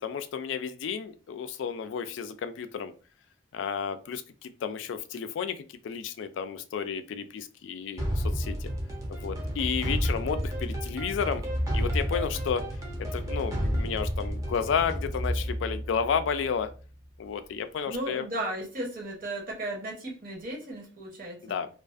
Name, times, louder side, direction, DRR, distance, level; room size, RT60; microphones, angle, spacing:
voice 1, 0.0-2.9 3.5-8.7 9.1-11.4 11.7-12.7 13.0-16.7 17.2-18.2 21.4-21.7, left 6 dB, 75° left, 10 dB, 0.3 m, -32 dB
sound 1, 8.0-16.8, equal, 20° right, 0.5 m, -31 dB
voice 2, 17.9-21.6, right 1 dB, 45° right, 0 dB, 0.8 m, -35 dB
2.4 x 2.3 x 2.4 m, 0.36 s
head